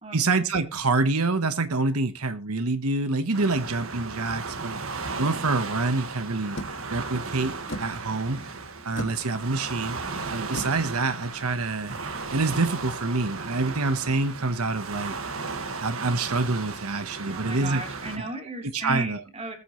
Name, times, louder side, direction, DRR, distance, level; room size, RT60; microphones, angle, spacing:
voice 1, 0.1-4.8 5.2-6.6 6.9-8.4 8.8-11.9 12.3-15.1 15.8-17.8 18.2-18.3 18.7-19.2, right 3 dB, 90° right, 9 dB, 1.2 m, -26 dB
Waves surf, 3.3-18.2, right 4 dB, 70° right, 1.7 m, -35 dB
sound 1, 6.5-12.1, equal, 60° left, 2.0 m, -41 dB
voice 2, 17.2-19.5, right 2 dB, 30° right, 3 dB, 3.6 m, -35 dB
20.5 x 8.3 x 3.1 m, 0.28 s
head